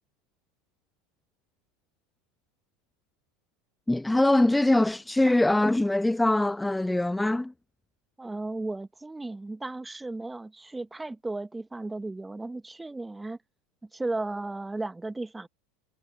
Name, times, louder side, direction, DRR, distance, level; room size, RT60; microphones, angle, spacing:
voice 1, 3.9-7.5, left 1 dB, 5° left, 0.3 m, -23 dB
voice 2, 8.2-13.4 13.9-15.5, right 2 dB, 10° right, 1.5 m, -35 dB
hypercardioid pair, 85°, 0 cm